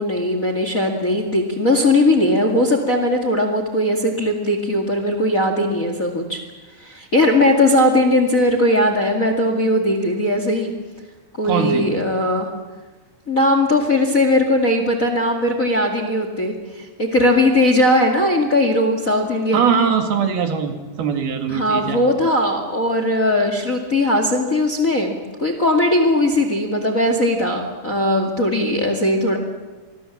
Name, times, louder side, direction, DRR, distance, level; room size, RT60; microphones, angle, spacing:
voice 1, 0.0-6.4 6.8-10.7 11.4-12.5 13.3-19.7 21.5-29.4, left 1 dB, 30° left, 6 dB, 1.9 m, -19 dB
voice 2, 11.4-11.9 19.5-22.0, right 6 dB, 75° right, 5 dB, 4.0 m, -21 dB
26.5 x 21.0 x 7.4 m, 1.3 s
omnidirectional pair, 4.4 m